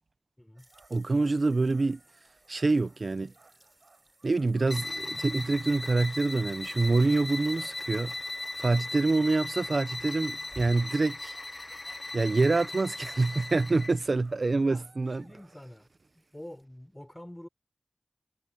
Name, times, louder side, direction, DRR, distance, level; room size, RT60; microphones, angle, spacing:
voice 1, 0.4-0.7 9.1-9.3 14.6-15.9 16.1-17.5, left 1 dB, 15° left, 3.7 m, -47 dB
sound 1, 0.5-9.7 10.0-15.6, right 4 dB, 85° right, 4.4 m, -61 dB
sound 2, 0.6-16.6, right 1 dB, 20° right, 8.0 m, -59 dB
voice 2, 0.9-2.0 2.5-3.3 4.2-8.1 8.6-11.4 12.1-15.2, right 3 dB, 65° right, 0.7 m, -26 dB
sound 3, 4.6-14.0, left 2 dB, 45° left, 0.9 m, -38 dB
cardioid pair, 45°, 0 cm